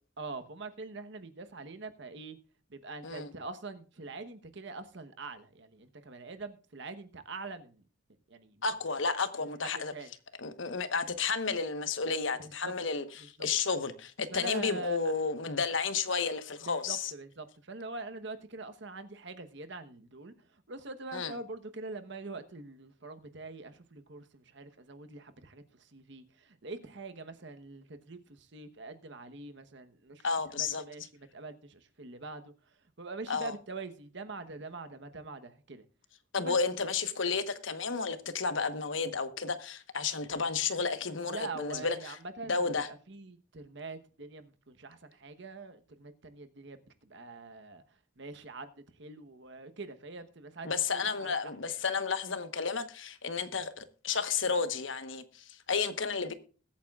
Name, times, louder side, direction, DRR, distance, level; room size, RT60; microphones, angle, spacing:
voice 1, 0.2-2.4 2.7-7.8 8.3-8.7 9.4-10.1 12.4-12.7 13.2-13.5 14.3-15.2 16.6-35.8 36.4-36.5 41.3-47.8 48.2-51.8, right 3 dB, 60° right, 1.1 m, -44 dB
voice 2, 8.6-9.9 10.4-17.1 21.1-21.3 30.2-30.8 33.3-33.5 36.3-42.2 42.5-42.9 50.6-56.3, left 5 dB, 70° left, 1.2 m, -32 dB
21.5 x 8.6 x 2.4 m
head